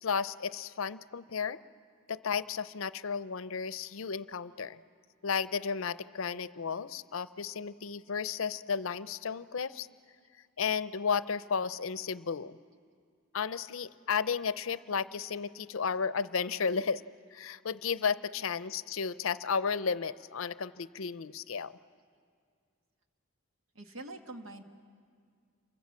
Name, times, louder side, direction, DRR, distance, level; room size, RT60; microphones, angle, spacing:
voice 1, 0.0-1.6 2.1-4.8 5.2-9.9 10.6-12.6 13.3-17.0 17.3-21.8, left 6 dB, 70° left, 15 dB, 0.6 m, -33 dB
voice 2, 23.7-24.6, right 2 dB, 70° right, 5 dB, 1.7 m, -44 dB
28.5 x 24.0 x 7.4 m, 2.1 s
head